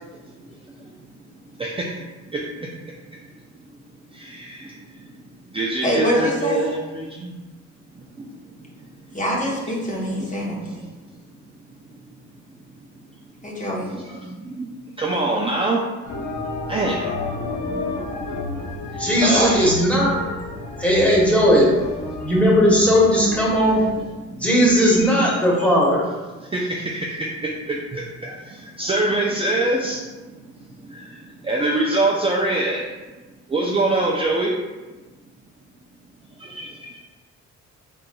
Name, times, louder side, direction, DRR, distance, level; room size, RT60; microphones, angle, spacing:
voice 1, 0.1-0.9 1.6-2.7 4.1-5.2 5.5-7.3 7.9-8.3 8.6-8.7 9.1-9.2 10.2-10.9 13.8-14.7 15.0-15.9 16.7-19.9 22.1-22.3 23.6-24.1 24.9-25.8 26.4-27.5 28.8-32.9 33.5-34.5 36.4-37.0, right 2 dB, 20° right, -2 dB, 0.4 m, -26 dB
voice 2, 5.8-6.6 9.1-10.8 13.4-13.9 19.3-19.5, equal, 25° left, -4 dB, 0.9 m, -24 dB
sound 1, 16.0-23.9, left 3 dB, 75° left, 0.8 m, -31 dB
voice 3, 19.0-20.1 20.8-21.7 22.2-23.8 24.3-26.0, equal, 5° left, -5 dB, 1.2 m, -17 dB
3.9 x 3.5 x 2.2 m, 1.2 s
cardioid pair, 90°, 30 cm